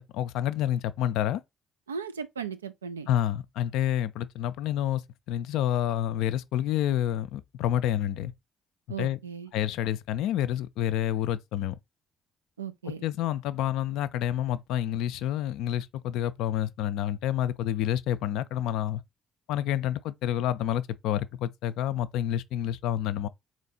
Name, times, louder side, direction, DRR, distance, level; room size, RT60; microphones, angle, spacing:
voice 1, 0.1-1.4 3.1-5.0 5.3-8.3 9.0-9.2 9.5-11.8 12.9-19.0 19.5-23.3, left 11 dB, 70° left, 0.3 m, -28 dB
voice 2, 1.9-3.1 8.9-9.5 12.6-13.0, right 6 dB, 85° right, 0.3 m, -36 dB
4.1 x 3.1 x 4.0 m
figure-of-eight pair, 45°, 0 cm